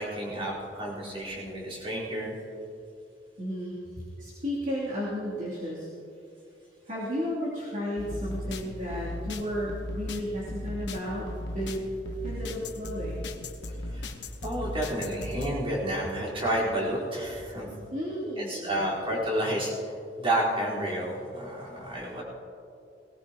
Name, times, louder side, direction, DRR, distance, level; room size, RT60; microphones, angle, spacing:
voice 1, 0.0-2.4 13.9-14.1 14.4-17.7 18.4-22.2, right 1 dB, 30° right, -6 dB, 4.1 m, -30 dB
voice 2, 3.4-5.9 6.9-11.8 12.2-13.2 17.9-18.9, equal, 45° right, -8 dB, 2.9 m, -33 dB
sound 1, 8.0-15.5, left 1 dB, 80° left, 1.1 m, -37 dB
19.5 x 18.5 x 2.9 m, 2.6 s
head